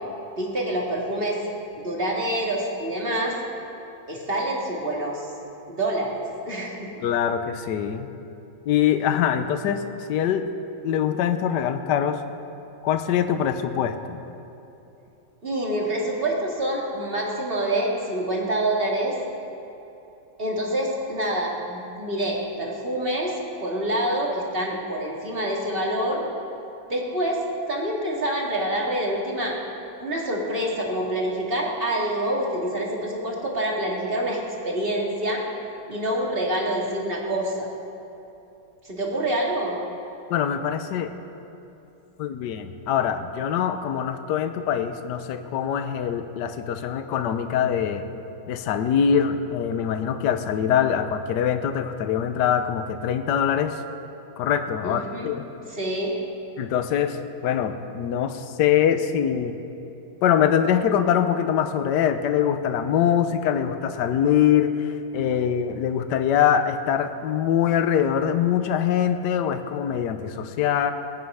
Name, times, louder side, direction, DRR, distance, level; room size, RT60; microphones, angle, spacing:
voice 1, 0.4-1.4 1.8-3.4 4.1-5.3 5.7-6.9 15.4-19.2 20.4-23.3 23.6-26.2 26.9-27.4 27.7-29.6 30.0-35.4 35.9-37.7 38.8-39.8 54.8-55.3 55.7-56.2, right 1 dB, 30° right, -2 dB, 2.4 m, -26 dB
voice 2, 7.0-8.1 8.7-10.5 10.8-12.2 12.8-14.2 40.3-41.1 42.2-48.0 48.5-53.8 54.4-55.4 56.6-57.2 57.4-59.6 60.2-70.9, left 9 dB, 70° left, 9 dB, 1.3 m, -23 dB
20.5 x 9.3 x 5.6 m, 2.9 s
omnidirectional pair, 2.0 m